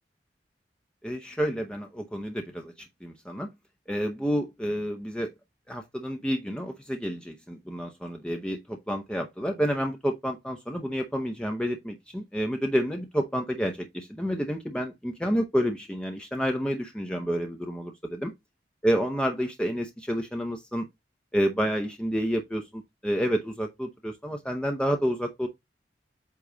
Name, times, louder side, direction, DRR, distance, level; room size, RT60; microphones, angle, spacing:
voice 1, 1.0-3.5 3.9-5.3 5.7-18.3 18.8-20.9 21.3-25.5, equal, 5° left, 0.7 m, -29 dB
8.4 x 3.0 x 3.8 m
head